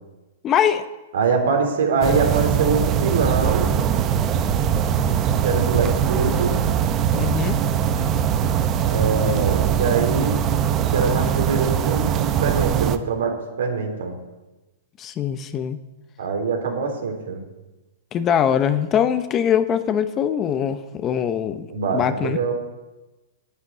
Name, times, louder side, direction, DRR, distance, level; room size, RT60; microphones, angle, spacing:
voice 1, 0.4-0.8 7.1-7.6 15.0-15.8 18.1-21.7 21.9-22.4, left 9 dB, 25° left, 10 dB, 0.8 m, -22 dB
voice 2, 1.1-3.7 5.4-6.6 8.8-10.4 10.9-14.2 16.2-17.4 21.7-22.5, right 4 dB, 80° right, 3 dB, 3.6 m, -23 dB
sound 1, 2.0-13.0, right 8 dB, 30° right, 0.8 m, -21 dB
9.5 x 8.7 x 9.6 m, 1.1 s
hypercardioid pair, 140°, 0 cm